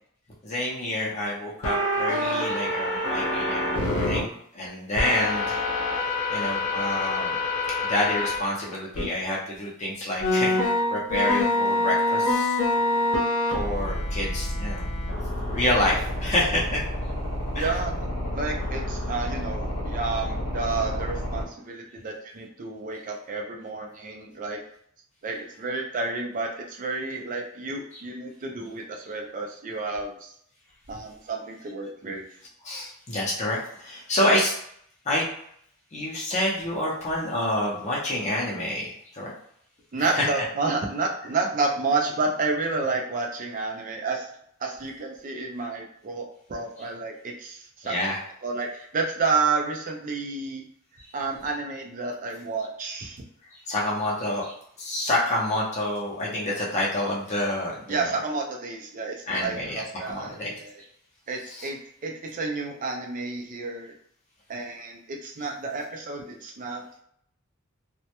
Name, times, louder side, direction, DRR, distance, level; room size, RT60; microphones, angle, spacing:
voice 1, 0.4-5.6 6.3-7.4 7.9-10.6 10.9-12.6 13.5-14.9 15.5-16.8 17.5-17.7 32.6-34.5 35.1-35.2 35.9-39.3 40.0-40.3 47.8-48.2 53.7-58.1 59.3-60.5 61.5-61.7, left 1 dB, 35° left, -4 dB, 0.5 m, -28 dB
sound 1, 1.6-4.2 5.0-8.4 8.9-9.0 10.2-21.4, left 1 dB, 85° left, 0.7 m, -27 dB
voice 2, 17.6-18.0 18.3-24.6 25.2-30.3 30.9-32.2 39.9-44.3 44.6-48.1 48.4-50.7 51.1-53.2 57.9-60.8 61.3-63.9 64.5-67.0, right 3 dB, 40° right, 1 dB, 0.4 m, -30 dB
2.1 x 2.1 x 2.8 m, 0.68 s
head